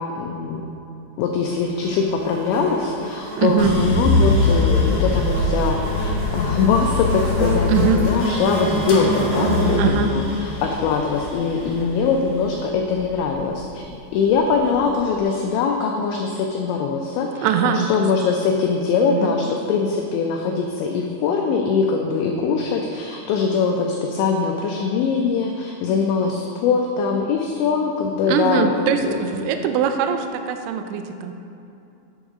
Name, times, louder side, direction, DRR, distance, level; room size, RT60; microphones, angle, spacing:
voice 1, 0.2-0.6 1.2-29.1, left 5 dB, 85° left, 1 dB, 2.6 m, -22 dB
Buzz, 1.8-12.2, right 1 dB, 55° right, 1.5 m, -28 dB
voice 2, 3.4-3.7 7.7-8.0 9.8-10.1 17.4-17.9 19.1-19.3 28.3-31.3, right 7 dB, 90° right, 7 dB, 2.5 m, -21 dB
sound 1, 3.6-13.8 14.2-15.0, left 3 dB, 55° left, 2.1 m, -23 dB
9.4 x 8.1 x 3.6 m, 2.7 s
omnidirectional pair, 5.9 m